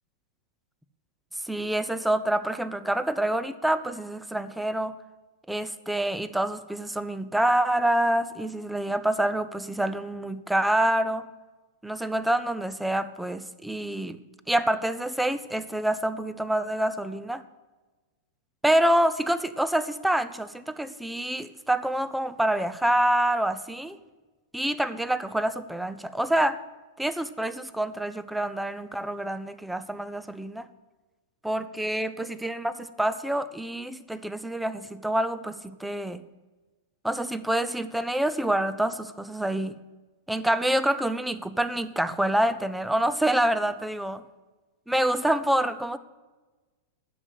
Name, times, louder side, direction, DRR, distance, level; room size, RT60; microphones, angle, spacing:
voice 1, 1.4-5.0 5.5-11.2 11.8-14.2 14.5-17.4 18.6-24.0 24.5-26.6 27.0-30.7 31.4-36.2 37.0-39.8 40.3-44.2 44.9-46.0, right 1 dB, 5° right, 13 dB, 0.7 m, -27 dB
9.9 x 7.7 x 9.3 m, 1.2 s
hypercardioid pair, 110°, 0 cm